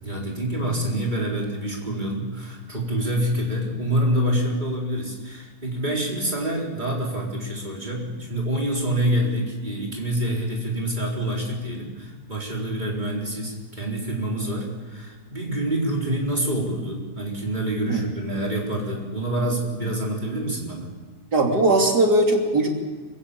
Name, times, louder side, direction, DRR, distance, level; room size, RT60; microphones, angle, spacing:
voice 1, 0.0-20.9, right 1 dB, 25° right, -2 dB, 4.5 m, -26 dB
voice 2, 21.3-22.7, right 2 dB, 80° right, 1 dB, 3.5 m, -19 dB
25.0 x 15.5 x 8.5 m, 1.5 s
omnidirectional pair, 1.7 m